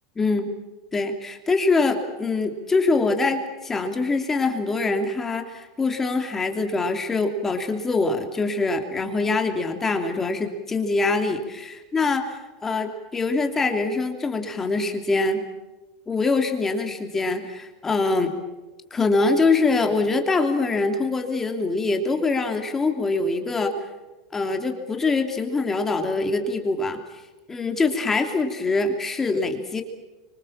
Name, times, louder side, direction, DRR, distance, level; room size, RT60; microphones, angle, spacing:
voice 1, 0.2-0.5 0.9-15.4 16.1-18.3 18.9-23.7 24.3-27.0 27.5-29.8, left 3 dB, 10° left, 5 dB, 3.0 m, -24 dB
30.0 x 26.0 x 7.4 m, 1.1 s
supercardioid pair, 170°, 3 cm